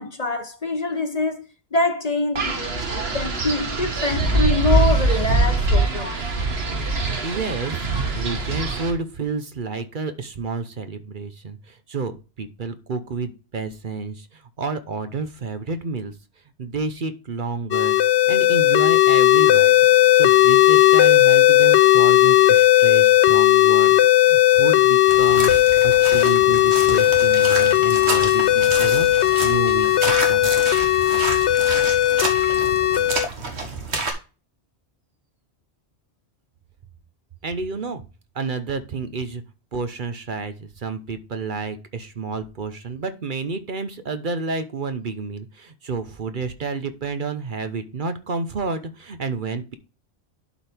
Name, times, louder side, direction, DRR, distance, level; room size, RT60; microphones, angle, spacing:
voice 1, 0.0-1.4 1.7-6.1, left 2 dB, 40° left, 0.9 m, -25 dB
Wind, 2.4-8.9, right 2 dB, 70° right, 1.7 m, -22 dB
voice 2, 7.2-7.9 8.1-16.1 16.6-18.0 18.3-30.7 37.4-38.0 38.3-39.4 39.7-49.7, right 4 dB, 50° right, 0.9 m, -30 dB
sound 1, 17.7-33.3, left 13 dB, 80° left, 0.9 m, -16 dB
sound 2, 25.1-34.1, right 3 dB, 85° right, 1.7 m, -29 dB
11.5 x 4.5 x 3.4 m
omnidirectional pair, 1.1 m